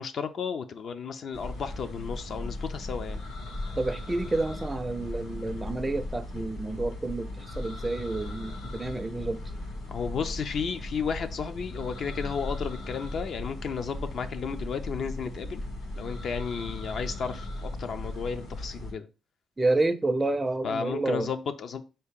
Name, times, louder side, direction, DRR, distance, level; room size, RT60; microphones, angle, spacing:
voice 1, 0.0-3.2 9.9-15.6 16.0-19.1 20.6-21.8, left 6 dB, 60° left, 0.4 m, -33 dB
sound 1, 1.3-18.9, left 1 dB, 85° left, 1.4 m, -37 dB
voice 2, 3.8-9.4 19.6-21.3, right 2 dB, 15° right, 0.4 m, -29 dB
4.1 x 2.8 x 3.6 m
cardioid pair, 90°, 0 cm